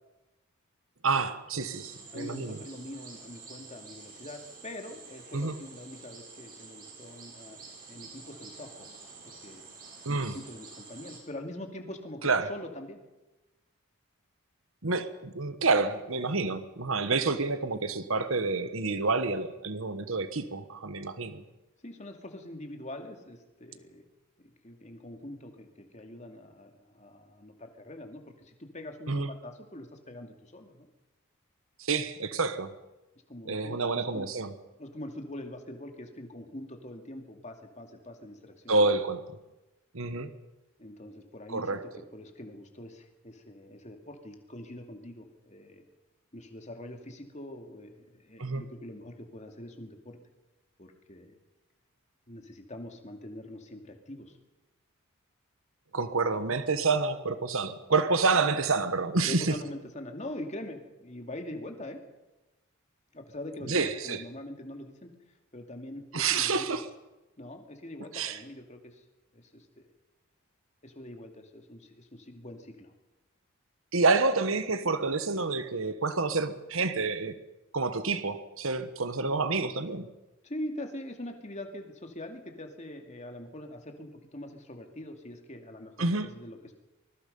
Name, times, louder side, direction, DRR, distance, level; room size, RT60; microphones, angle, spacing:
voice 1, 1.0-2.6 5.3-5.6 10.0-10.4 12.2-12.5 14.8-21.4 29.1-29.3 31.8-32.7 33.5-34.5 38.7-39.2 39.9-40.3 41.5-41.8 48.4-48.6 55.9-59.5 63.7-64.2 66.1-66.8 68.1-68.4 73.9-77.3 77.7-80.1 86.0-86.3, right 3 dB, 70° right, 11 dB, 1.3 m, -28 dB
sound 1, 1.6-11.2, right 4 dB, 40° right, 5.5 m, -49 dB
voice 2, 2.1-8.9 9.2-9.6 10.1-13.0 21.8-24.1 24.4-30.9 33.3-34.3 34.8-38.8 40.8-45.9 46.3-50.2 50.8-51.4 52.3-54.4 59.3-62.0 63.1-63.8 64.0-65.1 65.5-66.7 67.4-69.0 69.3-69.9 70.8-72.9 80.4-86.7, left 1 dB, 30° left, 4 dB, 2.4 m, -43 dB
24.5 x 21.0 x 5.4 m, 1.0 s
head